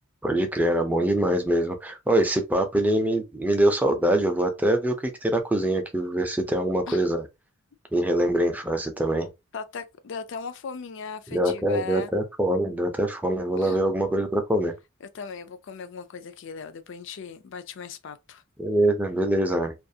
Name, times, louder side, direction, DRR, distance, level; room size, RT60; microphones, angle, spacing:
voice 1, 0.2-7.3 7.9-9.3 11.3-14.7 18.6-19.7, right 1 dB, 10° right, 0.4 m, -24 dB
voice 2, 9.5-12.1 13.6-13.8 15.1-18.4, left 5 dB, 60° left, 0.4 m, -38 dB
2.4 x 2.4 x 2.7 m
head